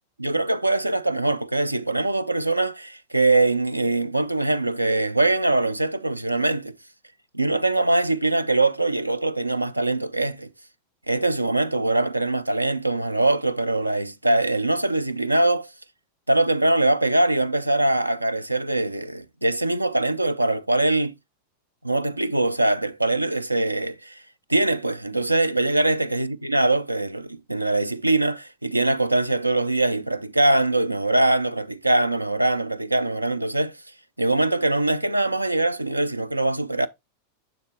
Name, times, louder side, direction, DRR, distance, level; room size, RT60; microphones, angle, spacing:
voice 1, 0.2-6.7 7.3-10.5 11.1-15.7 16.3-21.1 21.8-24.2 24.5-33.8 34.2-36.9, right 2 dB, 85° right, 0.4 m, -22 dB
7.1 x 6.3 x 2.7 m
figure-of-eight pair, 90°, 0 cm